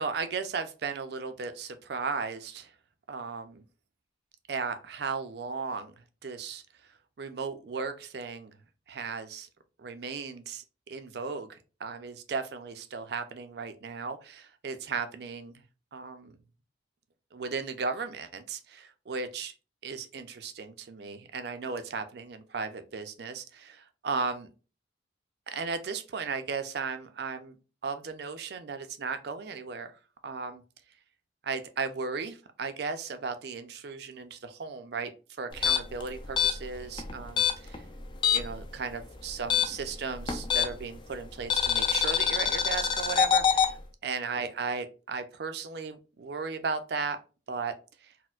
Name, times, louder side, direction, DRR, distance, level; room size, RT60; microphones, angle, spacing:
voice 1, 0.0-2.7 3.1-3.6 4.5-5.9 6.2-6.6 7.2-8.5 8.9-9.5 9.8-15.6 15.9-16.4 17.3-19.5 19.8-24.5 25.5-27.6 27.8-30.0 30.2-30.6 31.4-35.1 35.4-37.8 38.3-43.8 44.0-47.2 47.5-47.7 48.0-48.1, right 5 dB, 60° right, 9 dB, 0.4 m, -36 dB
sound 1, 35.5-38.6 38.9-41.0 41.5-43.7, left 8 dB, 25° left, 0.3 m, -26 dB
4.2 x 2.1 x 2.3 m, 0.33 s
head